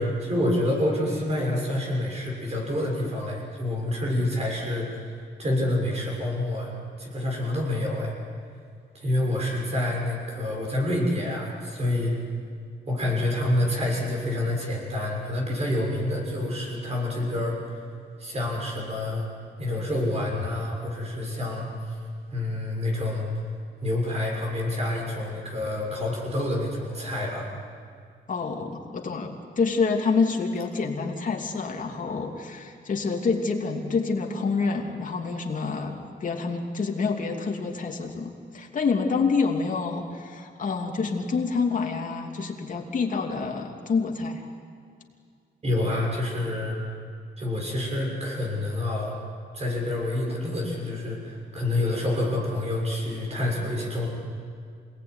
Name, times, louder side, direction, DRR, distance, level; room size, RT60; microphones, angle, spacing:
voice 1, 0.0-5.1 5.4-8.1 8.9-12.2 12.9-17.8 18.2-19.3 19.6-21.9 22.3-23.3 23.8-27.5 45.6-46.8 47.4-49.1 49.5-54.1, left 1 dB, 35° right, -1 dB, 6.6 m, -27 dB
voice 2, 28.3-44.5, left 4 dB, 45° left, 1 dB, 2.8 m, -27 dB
27.0 x 19.0 x 9.7 m, 2.3 s
wide cardioid pair, 165°, 19 cm